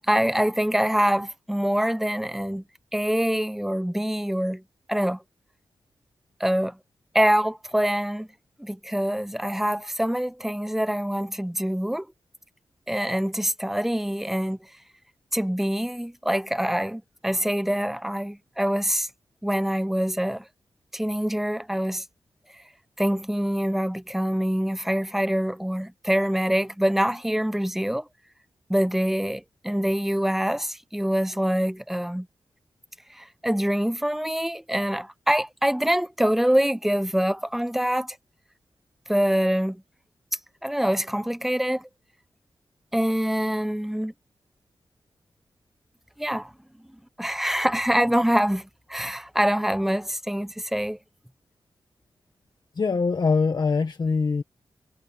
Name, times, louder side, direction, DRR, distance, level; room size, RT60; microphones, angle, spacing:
voice 1, 0.1-2.6 2.9-4.6 4.9-5.2 6.4-6.8 7.1-8.3 8.6-12.1 12.9-14.6 15.3-19.1 19.4-20.4 20.9-22.0 23.0-28.0 28.7-32.3 33.1-38.2 39.1-39.8 40.6-41.9 42.9-44.1 46.2-46.5 47.2-51.0, equal, 5° right, 0.6 m, -25 dB
voice 2, 52.7-54.4, left 4 dB, 50° left, 1.3 m, -23 dB
cardioid pair, 75°, 9 cm